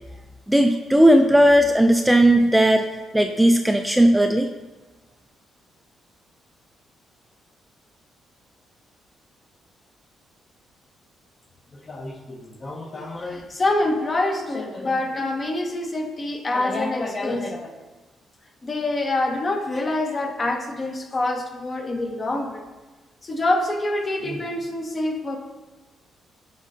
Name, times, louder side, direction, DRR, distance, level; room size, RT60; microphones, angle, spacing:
voice 1, 0.5-2.9 3.1-4.5, right 1 dB, 5° right, 5 dB, 0.3 m, -16 dB
voice 2, 11.9-17.7 18.6-22.6 23.2-25.4, left 2 dB, 30° left, 4 dB, 0.8 m, -26 dB
8.0 x 5.0 x 2.6 m, 1.2 s
cardioid pair, 90°, 0 cm